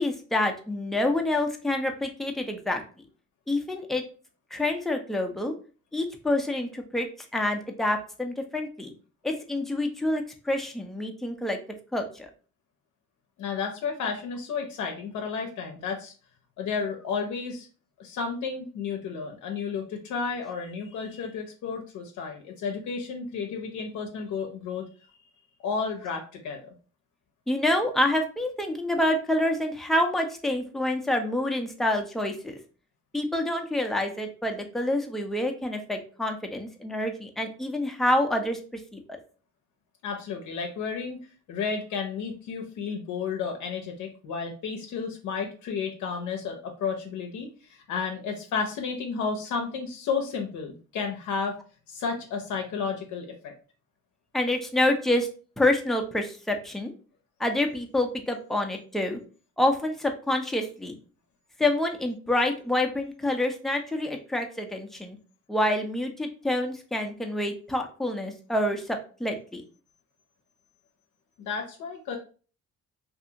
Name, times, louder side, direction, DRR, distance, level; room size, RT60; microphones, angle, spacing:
voice 1, 0.0-2.8 3.5-4.0 4.5-5.5 5.9-7.1 7.3-8.9 9.2-11.6 11.9-12.3 27.5-32.6 33.1-38.6 38.9-39.0 54.3-55.3 55.6-56.9 57.4-59.2 59.6-61.0 61.6-65.2 65.5-69.6, left 1 dB, ahead, 3 dB, 0.5 m, -27 dB
voice 2, 13.4-16.1 16.6-17.7 18.0-24.9 25.6-26.7 40.0-41.2 41.5-51.6 51.9-53.5 71.4-72.2, left 5 dB, 75° left, 2 dB, 0.6 m, -32 dB
2.7 x 2.5 x 2.6 m, 0.37 s
cardioid pair, 90°, 30 cm